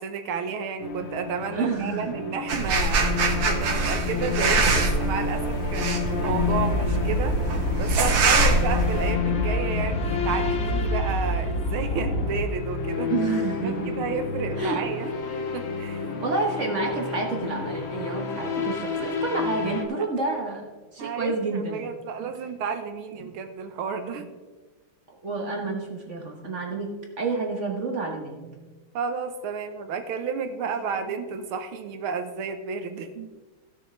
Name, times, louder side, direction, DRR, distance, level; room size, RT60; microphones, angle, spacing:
voice 1, 0.0-7.4 7.8-13.1 13.6-15.2 15.5-16.2 21.0-24.3 28.9-33.1, right 5 dB, 80° right, 8 dB, 1.8 m, -32 dB
sound 1, 0.8-19.8, left 6 dB, 50° left, 0.8 m, -31 dB
voice 2, 1.5-2.2 8.4-8.5 13.1-14.1 14.6-14.8 16.2-21.9 22.2-22.3 23.2-23.3 25.1-28.6 31.0-31.1 33.2-33.3, right 3 dB, 40° right, 1 dB, 1.2 m, -29 dB
sound 2, 2.5-9.1, right 3 dB, 65° right, 2.0 m, -24 dB
sound 3, 6.3-12.5, equal, 90° left, 1.9 m, -27 dB
16.0 x 6.6 x 3.2 m, 1.3 s
omnidirectional pair, 2.3 m